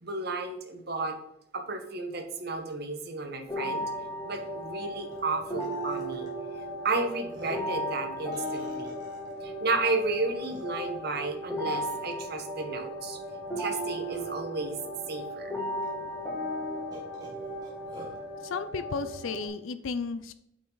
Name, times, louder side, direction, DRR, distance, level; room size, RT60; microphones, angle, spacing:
voice 1, 0.0-1.2 1.5-3.9 4.2-6.3 6.8-9.0 9.4-13.2 13.6-14.8 15.1-15.5, right 3 dB, 50° right, 6 dB, 1.1 m, -32 dB
sound 1, 3.5-19.5, equal, 10° left, 2.3 m, -36 dB
Burping eructation, 3.8-3.9 4.3-4.5 5.1-5.2 5.6-6.3 6.9-7.0 7.3-7.7 8.3-9.3 10.0-10.1 10.4-11.0 11.7-12.0 13.6-14.5 15.3-15.4 15.8-15.9 16.9-18.2, equal, 20° right, 2.1 m, -49 dB
voice 2, 18.4-20.3, left 4 dB, 75° left, 11 dB, 0.5 m, -33 dB
8.7 x 5.4 x 3.9 m, 0.79 s
head